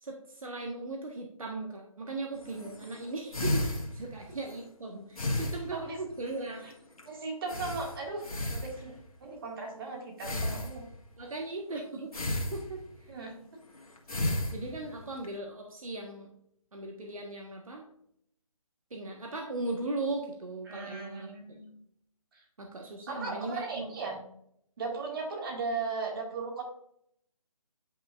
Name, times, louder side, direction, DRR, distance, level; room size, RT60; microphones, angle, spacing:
voice 1, 0.0-6.6 11.2-12.2 12.5-12.8 14.5-16.3 16.7-17.8 18.9-21.6 22.6-23.9, right 2 dB, 70° right, 1 dB, 1.5 m, -38 dB
sound 1, 2.4-4.6 5.2-6.3 6.6-6.7 7.0-7.1 7.5-9.2 10.2-11.2 12.1-13.1 13.8-15.3, left 1 dB, 75° left, 1.7 m, -34 dB
voice 2, 7.1-8.2 8.5-8.9 9.2-10.9 13.1-13.3 20.7-21.7 22.3-22.4 23.1-24.2 24.8-26.6, right 4 dB, 40° right, -1 dB, 2.2 m, -37 dB
9.8 x 5.7 x 2.6 m, 0.71 s
figure-of-eight pair, 150°, 18 cm